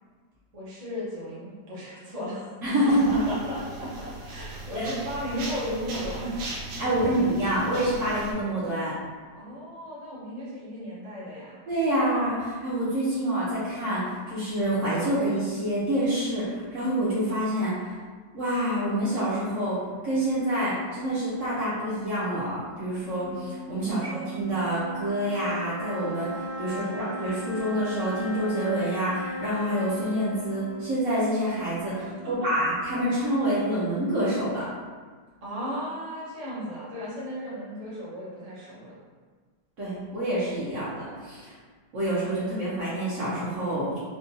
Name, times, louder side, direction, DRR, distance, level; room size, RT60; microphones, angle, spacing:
voice 1, 0.5-2.4 2.8-6.3 6.9-7.1 9.4-11.6 23.8-24.3 26.6-27.0 32.0-32.3 35.4-39.0, equal, 35° right, -8 dB, 0.6 m, -35 dB
voice 2, 2.6-3.1 4.7-4.9 6.8-8.9 11.7-18.0 18.3-19.8 20.0-34.7 39.8-41.5 41.9-44.0, right 1 dB, 55° right, -9 dB, 1.0 m, -27 dB
sound 1, 2.9-8.3, right 2 dB, 75° right, 1.3 m, -38 dB
sound 2, 23.0-32.5, equal, 45° left, 0.5 m, -37 dB
3.7 x 2.3 x 2.7 m, 1.5 s
omnidirectional pair, 1.9 m